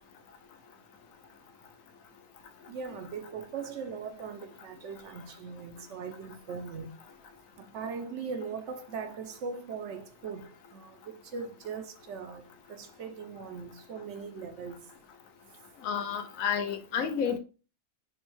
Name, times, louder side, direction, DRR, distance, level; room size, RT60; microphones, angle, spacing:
voice 1, 2.7-6.9 7.6-14.8, right 5 dB, 65° right, 0.8 m, -40 dB
voice 2, 15.8-17.4, left 7 dB, 80° left, 1.0 m, -30 dB
6.0 x 2.1 x 3.0 m
omnidirectional pair, 1.4 m